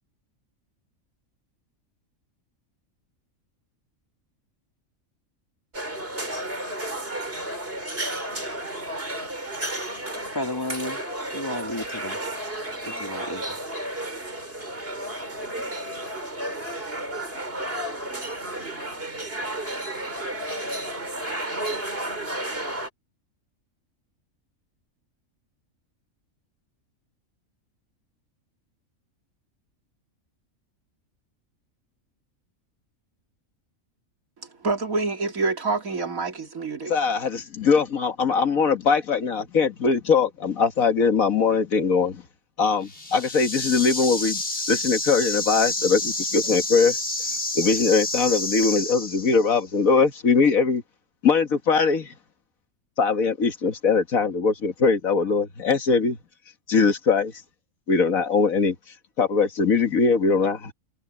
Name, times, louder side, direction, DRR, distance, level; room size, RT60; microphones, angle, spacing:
sound 1, 5.7-22.9, right 1 dB, 45° right, 5.0 m, -32 dB
voice 1, 10.3-11.0 11.3-12.2 12.9-13.6, left 1 dB, 15° left, 2.6 m, -32 dB
voice 2, 34.6-36.9, right 3 dB, 85° right, 3.2 m, -26 dB
voice 3, 36.9-42.2 42.6-44.4 44.7-47.0 47.6-50.8 51.2-52.1 53.0-56.2 56.7-57.3 57.9-58.8 59.2-60.7, left 5 dB, 80° left, 2.1 m, -21 dB
sound 2, 42.8-49.6, left 2 dB, 55° left, 4.6 m, -29 dB
omnidirectional pair, 1.4 m